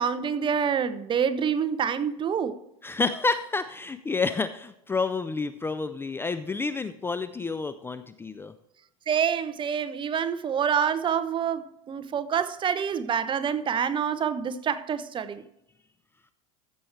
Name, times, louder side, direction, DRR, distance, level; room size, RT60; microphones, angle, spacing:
voice 1, 0.0-2.6 9.1-15.4, right 7 dB, 25° right, 0.7 m, -27 dB
voice 2, 2.8-8.5, left 4 dB, 15° left, 0.4 m, -29 dB
14.5 x 7.0 x 3.3 m
hypercardioid pair, 105°, 18 cm